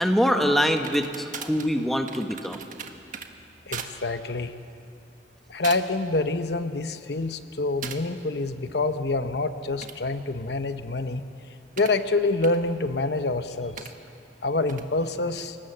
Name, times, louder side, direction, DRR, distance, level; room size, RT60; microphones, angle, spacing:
voice 1, 0.0-2.6, equal, ahead, 4 dB, 1.3 m, -24 dB
sound 1, 0.7-3.3 3.7-3.9 4.3-4.6 5.2-5.4 5.6-6.1 6.4-6.9 7.8-8.0 9.6-12.0 12.4-12.6 13.8-13.9 14.7-14.9, right 6 dB, 45° right, 1.5 m, -40 dB
voice 2, 3.7-4.5 5.5-11.2 11.8-13.9 14.4-15.6, left 2 dB, 65° left, 9 dB, 0.9 m, -27 dB
29.0 x 19.5 x 7.9 m, 2.5 s
head